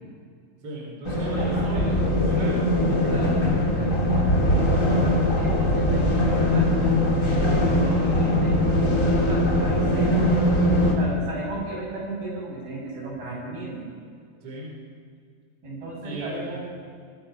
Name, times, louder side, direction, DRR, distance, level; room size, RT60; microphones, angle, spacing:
voice 1, 0.6-2.6 7.2-7.4 10.8-11.1 14.4-14.8 16.0-16.6, right 1 dB, 40° right, -2 dB, 5.0 m, -36 dB
sound 1, 1.0-10.9, left 1 dB, 20° left, 3.0 m, -21 dB
voice 2, 1.2-1.9 2.3-6.7 7.3-10.1 11.0-14.0 15.6-16.6, right 2 dB, 70° right, -3 dB, 8.9 m, -35 dB
24.0 x 24.0 x 5.8 m, 2.2 s
omnidirectional pair, 4.3 m